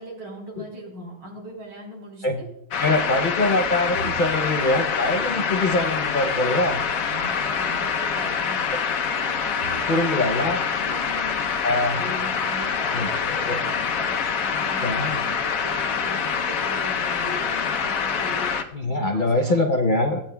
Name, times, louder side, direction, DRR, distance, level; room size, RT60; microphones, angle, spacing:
voice 1, 0.0-2.5 3.0-3.2 3.9-4.3 7.0-8.7 9.2-11.5 11.9-18.5 18.9-19.6, right 1 dB, 80° right, -2 dB, 4.4 m, -39 dB
sound 1, 2.7-18.6, left 6 dB, 60° left, 1.0 m, -25 dB
voice 2, 2.8-6.8 9.9-10.6 11.6-12.0 12.9-13.1 13.4-13.6 14.8-15.2 18.7-20.2, left 2 dB, 75° left, 5 dB, 0.4 m, -23 dB
23.0 x 8.9 x 2.2 m, 0.82 s
omnidirectional pair, 2.0 m